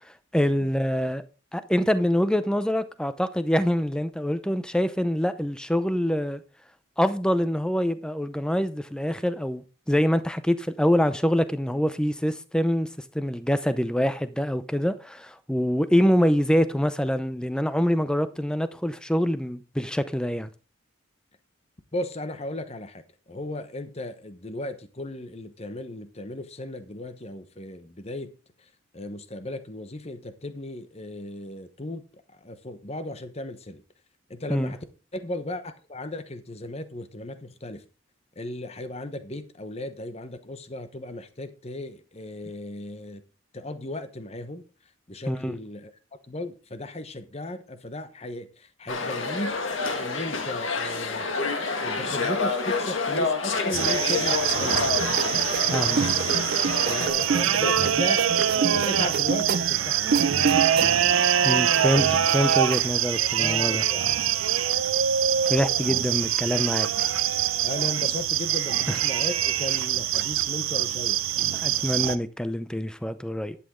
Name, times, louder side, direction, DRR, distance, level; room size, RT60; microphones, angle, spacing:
voice 1, 0.3-1.2 1.5-6.4 7.0-12.9 13.1-20.5 34.5-34.7 45.3-45.5 55.6-56.3 61.4-63.8 65.5-66.9 68.9-69.0 71.5-73.6, equal, 5° left, 0.6 m, -25 dB
voice 2, 21.9-23.0 23.3-28.3 28.9-32.0 32.3-33.8 34.3-34.8 35.1-37.8 38.4-43.2 43.5-44.6 45.1-45.9 46.3-51.3 51.8-54.8 56.9-60.3 63.4-64.1 67.6-71.5, left 1 dB, 30° left, 1.0 m, -36 dB
sound 1, 48.9-57.1, left 4 dB, 70° left, 1.9 m, -28 dB
sound 2, 53.7-72.1, right 10 dB, 85° right, 0.7 m, -24 dB
sound 3, 55.0-61.1 61.5-62.8, right 5 dB, 50° right, 0.4 m, -29 dB
11.0 x 8.7 x 3.7 m
head